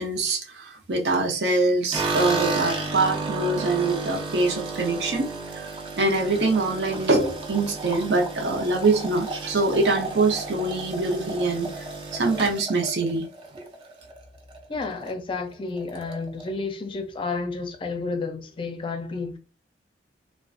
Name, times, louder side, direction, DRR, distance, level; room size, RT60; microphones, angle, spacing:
voice 1, 0.0-5.7 6.0-11.7 12.1-13.3, right 3 dB, 70° right, 0.7 m, -24 dB
sound 1, 1.9-14.2 14.5-15.1 15.4-15.5 15.8-16.5, right 3 dB, 30° right, 0.5 m, -32 dB
voice 2, 14.7-19.4, left 4 dB, 30° left, 0.5 m, -31 dB
2.4 x 2.2 x 2.5 m
head